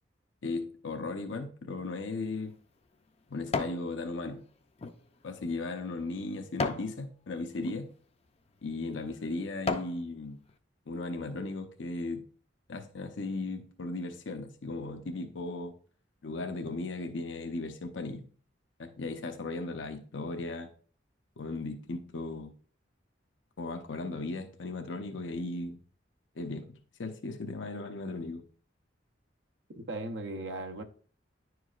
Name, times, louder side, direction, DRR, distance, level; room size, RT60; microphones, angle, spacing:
voice 1, 0.4-2.5 3.3-4.4 5.2-7.9 8.6-10.4 10.9-12.2 12.7-15.7 16.2-18.2 18.8-20.7 21.4-22.5 23.6-25.8 26.4-26.7 27.0-28.4, left 3 dB, 80° left, 0.7 m, -36 dB
sound 1, 2.0-3.9 4.3-6.9 7.5-7.8 8.5-8.6 9.1-10.0 10.5-10.6, left 3 dB, 35° left, 0.5 m, -36 dB
voice 2, 29.7-30.8, right 2 dB, 75° right, 0.8 m, -37 dB
10.0 x 4.7 x 2.4 m
head